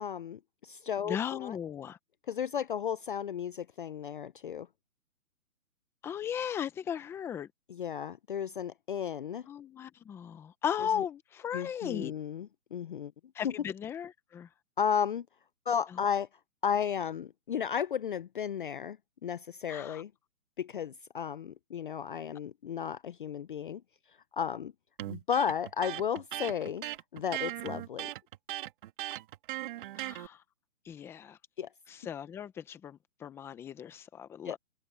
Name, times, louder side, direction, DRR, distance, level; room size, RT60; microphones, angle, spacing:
voice 1, 0.0-1.6 2.3-4.7 7.7-9.5 11.5-13.1 13.4-13.5 14.8-15.3 15.7-16.3 16.6-19.0 19.2-20.1 20.6-23.8 24.3-24.7 25.1-26.8 27.1-28.1 31.6-31.7 34.4-34.6, left 8 dB, 35° left, 0.7 m, -34 dB
voice 2, 1.0-2.0 6.0-7.5 9.5-12.1 13.3-14.5 19.7-20.0 30.0-30.4 30.8-31.4 31.9-34.6, left 9 dB, 5° left, 0.9 m, -37 dB
Electric guitar, 25.0-30.3, right 15 dB, 35° right, 2.8 m, -38 dB
hypercardioid pair, 150°, 44 cm